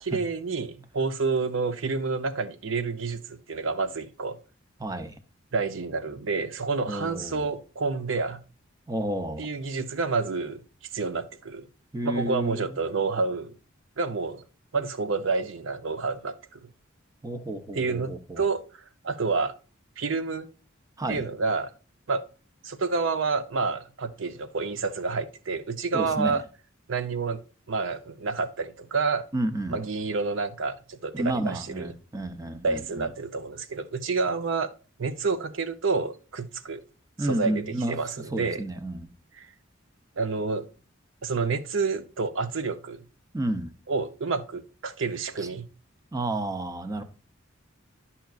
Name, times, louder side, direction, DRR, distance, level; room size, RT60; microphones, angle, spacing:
voice 1, 0.0-4.4 5.5-8.4 9.4-10.6 10.9-11.7 12.0-13.5 14.0-14.4 14.7-16.6 17.7-18.6 19.0-19.5 20.0-20.5 21.1-21.7 22.1-22.2 22.6-26.4 26.9-27.4 27.7-29.2 29.7-31.9 32.6-34.7 35.0-36.8 37.2-38.6 39.4-39.5 40.2-40.7 41.2-43.0 43.9-45.6, right 4 dB, 70° right, 0.6 m, -29 dB
voice 2, 4.8-5.1 6.9-7.5 8.9-9.5 11.9-12.8 17.2-18.5 21.0-21.2 25.9-26.4 29.3-29.8 31.1-33.1 37.2-38.0 38.3-39.1 43.3-43.7 45.4-45.5 46.1-47.0, right 1 dB, 15° right, 0.6 m, -31 dB
10.5 x 5.6 x 2.4 m
head